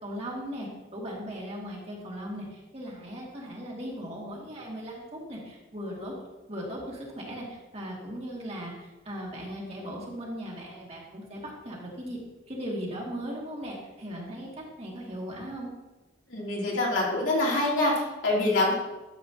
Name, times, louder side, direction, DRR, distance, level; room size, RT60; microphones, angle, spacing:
voice 1, 0.0-6.1 6.5-12.2 12.5-15.7, equal, 35° right, -3 dB, 2.4 m, -38 dB
voice 2, 16.3-18.7, left 2 dB, 80° left, -4 dB, 3.1 m, -25 dB
12.5 x 7.7 x 2.9 m, 1.1 s
head